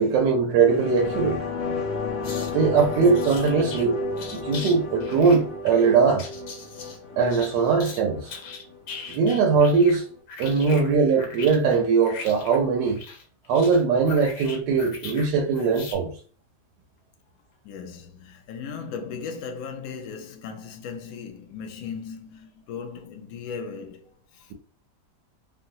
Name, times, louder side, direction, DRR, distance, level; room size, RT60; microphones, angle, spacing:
voice 1, 0.0-1.4 2.5-4.0 4.3-6.3 7.2-8.3 9.1-10.0 10.4-13.0 13.5-16.1, right 5 dB, 90° right, 1.2 m, -21 dB
sound 1, 0.6-9.7 10.0-10.1, left 4 dB, 40° left, 0.9 m, -32 dB
sound 2, 2.2-2.5 2.8-3.9 4.2-4.7 5.0-8.0 8.3-10.0 10.3-15.3 15.5-15.9, left 5 dB, 85° left, 1.4 m, -40 dB
voice 2, 17.6-24.5, left 6 dB, 70° left, 0.9 m, -37 dB
3.8 x 2.0 x 2.6 m
omnidirectional pair, 1.8 m